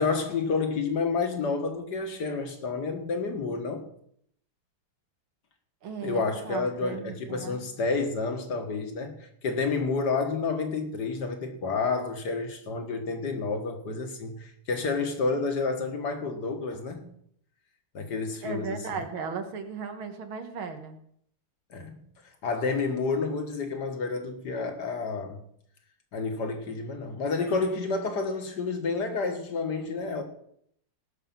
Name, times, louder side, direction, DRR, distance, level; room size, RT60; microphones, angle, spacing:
voice 1, 0.0-3.8 6.0-17.1 17.9-19.0 21.7-22.0 22.4-25.4 26.1-30.2, left 4 dB, 55° left, 2.2 m, -30 dB
voice 2, 5.8-7.6 18.4-21.0, right 5 dB, 75° right, 2.2 m, -36 dB
18.5 x 6.7 x 6.0 m
omnidirectional pair, 2.3 m